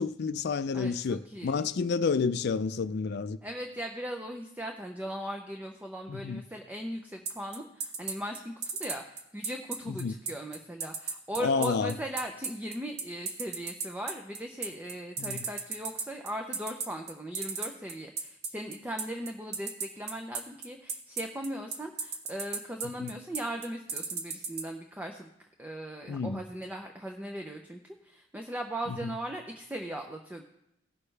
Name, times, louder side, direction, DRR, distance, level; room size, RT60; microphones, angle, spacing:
voice 1, 0.0-3.4 6.1-6.4 10.0-10.1 11.4-11.9 15.2-15.4 23.0-23.1 26.1-26.4 28.9-29.1, left 5 dB, 60° left, 0.4 m, -30 dB
voice 2, 0.7-1.7 3.4-25.3 25.6-30.4, right 1 dB, 10° right, 0.6 m, -38 dB
sound 1, 7.3-24.6, right 5 dB, 60° right, 1.1 m, -34 dB
17.5 x 6.5 x 3.3 m
head